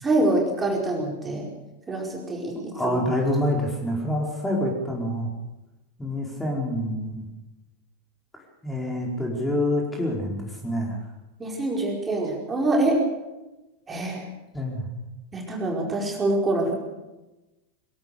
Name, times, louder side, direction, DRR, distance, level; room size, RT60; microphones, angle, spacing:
voice 1, 0.0-1.5 1.9-2.5 2.9-3.0 11.4-13.0 13.9-14.3 15.3-16.8, right 2 dB, 15° right, -1 dB, 4.9 m, -25 dB
voice 2, 2.7-5.3 6.0-7.2 8.6-11.0 14.5-14.9, left 1 dB, 5° left, -1 dB, 5.0 m, -26 dB
23.0 x 17.0 x 6.8 m, 1.0 s
figure-of-eight pair, 90°, 0 cm